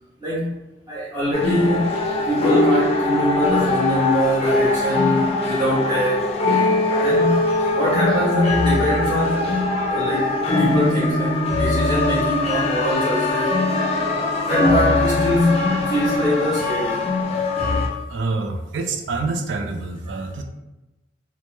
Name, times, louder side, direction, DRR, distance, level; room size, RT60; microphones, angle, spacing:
voice 1, 0.2-0.6 0.9-2.0 2.2-6.3 6.9-9.5 9.9-13.6 14.1-14.2 14.5-17.0, equal, 25° right, -11 dB, 0.6 m, -23 dB
sound 1, 1.3-17.9, left 2 dB, 35° left, 0.4 m, -21 dB
voice 2, 18.1-20.4, right 3 dB, 85° right, 5 dB, 0.4 m, -26 dB
2.2 x 2.0 x 2.9 m, 1.0 s
head